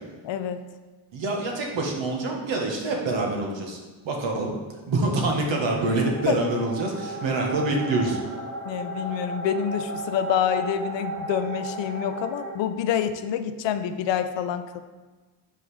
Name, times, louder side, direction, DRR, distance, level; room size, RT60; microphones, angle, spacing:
voice 1, 0.2-0.6 6.3-6.4 8.7-14.8, left 9 dB, 65° left, 10 dB, 0.6 m, -27 dB
voice 2, 1.1-3.8 4.0-4.5 4.9-8.2, right 2 dB, 65° right, 1 dB, 1.3 m, -26 dB
sound 1, 5.4-12.5, right 3 dB, 30° right, 1.2 m, -35 dB
5.6 x 5.3 x 3.2 m, 1.3 s
cardioid pair, 75°, 47 cm